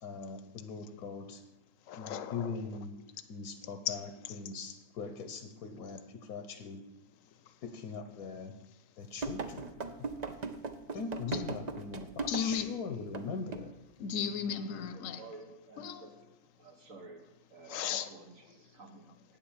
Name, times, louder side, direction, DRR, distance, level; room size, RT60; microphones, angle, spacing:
voice 1, 0.0-1.4 2.0-2.9 3.3-6.0 6.3-6.8 7.6-8.5 9.0-9.8 10.9-13.7, left 5 dB, 85° left, 1.4 m, -41 dB
voice 2, 1.9-2.6 3.9-4.0 4.2-4.3 11.3-11.4 12.3-12.7 14.0-15.2 15.8-16.1 17.7-18.1, left 8 dB, 65° left, 1.1 m, -35 dB
sound 1, 9.2-12.7 13.1-13.3 13.5-13.7, right 4 dB, 45° right, 0.6 m, -38 dB
voice 3, 15.1-16.1 16.6-17.2 17.5-19.2, right 3 dB, 60° right, 1.8 m, -51 dB
8.8 x 7.6 x 7.3 m
omnidirectional pair, 1.6 m